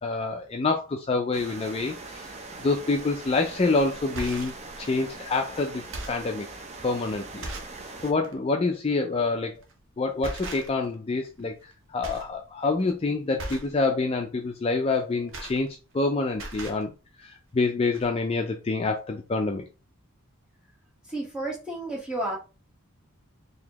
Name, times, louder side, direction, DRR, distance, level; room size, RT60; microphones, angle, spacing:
voice 1, 0.0-2.3 2.6-4.5 4.8-6.5 6.8-7.5 8.0-9.5 10.0-11.6 11.9-16.9 17.2-19.6, left 3 dB, 25° left, 0.4 m, -27 dB
sound 1, 1.3-8.1, right 3 dB, 30° right, 0.6 m, -41 dB
sound 2, 3.2-3.4 4.0-4.6 5.3-5.4 5.8-6.3 6.9-7.0 7.4-7.8 8.2-8.4 9.5-9.8 10.2-10.9 11.2-11.7 12.0-12.3 12.6-12.9 13.4-13.8 14.9-16.0 16.3-16.8 17.6-17.7 17.9-18.1, right 2 dB, 60° right, 0.8 m, -38 dB
voice 2, 21.0-22.4, right 1 dB, 5° right, 1.2 m, -31 dB
4.0 x 2.9 x 2.9 m
head